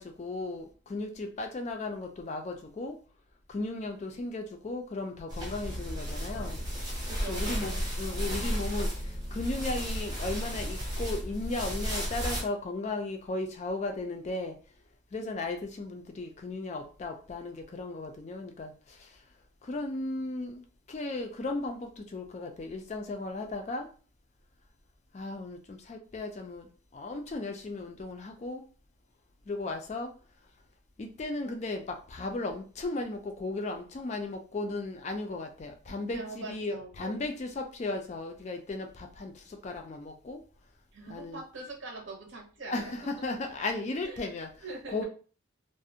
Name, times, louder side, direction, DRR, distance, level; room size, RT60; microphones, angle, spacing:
voice 1, 0.0-3.0 3.5-6.6 7.3-14.6 15.1-19.1 19.6-23.9 25.1-28.6 29.5-30.1 31.0-40.4 41.1-41.4 42.7-44.5 44.9-45.1, left 2 dB, 35° left, 4 dB, 0.3 m, -36 dB
sound 1, 5.3-12.4, equal, 20° right, 0.6 m, -33 dB
voice 2, 7.1-7.9 36.1-37.2 40.9-42.9 44.0-44.2 44.6-45.1, right 3 dB, 70° right, 1 dB, 0.7 m, -43 dB
2.4 x 2.0 x 2.7 m, 0.38 s
head